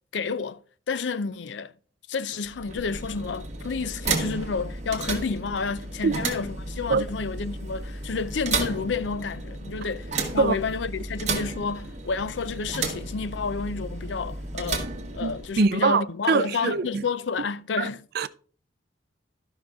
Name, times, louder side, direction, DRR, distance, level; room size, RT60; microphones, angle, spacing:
voice 1, 0.1-0.6 0.9-1.7 2.1-14.9 15.1-18.0, left 5 dB, 80° left, 0.5 m, -30 dB
sound 1, 2.4-15.7, right 3 dB, 40° right, 1.5 m, -33 dB
voice 2, 15.2-16.9 17.8-17.9 18.2-18.3, right 4 dB, 60° right, 0.4 m, -23 dB
13.0 x 5.7 x 3.6 m
head